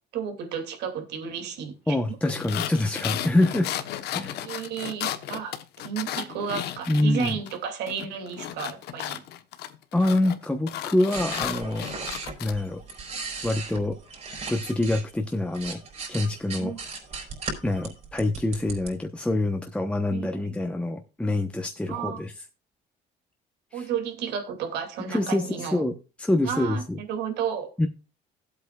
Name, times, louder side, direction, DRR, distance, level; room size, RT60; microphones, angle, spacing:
voice 1, 0.1-2.0 4.3-9.2 16.6-16.8 20.1-20.5 21.9-22.2 23.7-25.8 26.4-27.7, right 7 dB, 80° right, 2.5 m, -33 dB
voice 2, 1.9-3.7 4.1-4.4 6.9-7.4 9.9-11.9 12.4-12.8 13.4-14.0 14.5-15.8 16.1-16.7 17.6-22.3 23.7-23.9 25.1-25.9 26.2-27.0 27.8-27.9, left 1 dB, 5° left, 1.0 m, -25 dB
sound 1, 2.3-7.6 7.9-12.5, left 11 dB, 75° left, 1.1 m, -34 dB
sound 2, 11.1-15.0 15.4-18.9, right 4 dB, 40° right, 4.4 m, -37 dB
16.5 x 8.2 x 2.4 m
cardioid pair, 110°, 17 cm